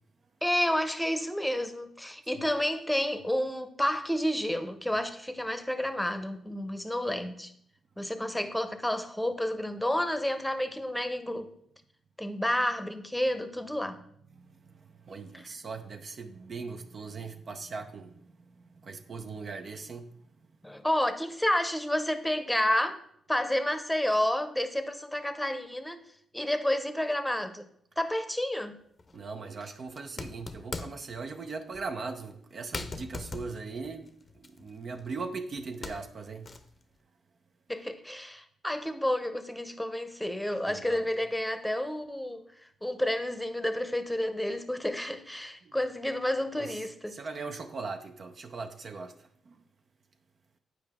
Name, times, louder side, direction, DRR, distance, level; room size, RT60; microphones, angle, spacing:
voice 1, 0.4-7.5 8.0-11.5 12.2-14.0 15.3-15.4 20.6-23.0 23.3-26.0 26.3-27.7 28.0-28.8 37.7-42.4 42.8-47.2, left 1 dB, 5° left, 0.8 m, -30 dB
voice 2, 14.4-20.1 29.1-36.5 40.6-41.0 45.6-45.8 46.6-46.8 47.1-49.6, right 4 dB, 55° right, 0.6 m, -40 dB
sound 1, 29.0-29.2 29.9-31.1 31.7-31.9 32.3-32.4 32.7-35.2 35.6-36.8, left 3 dB, 40° left, 0.7 m, -41 dB
8.7 x 4.7 x 3.6 m
supercardioid pair, 60°, 0 cm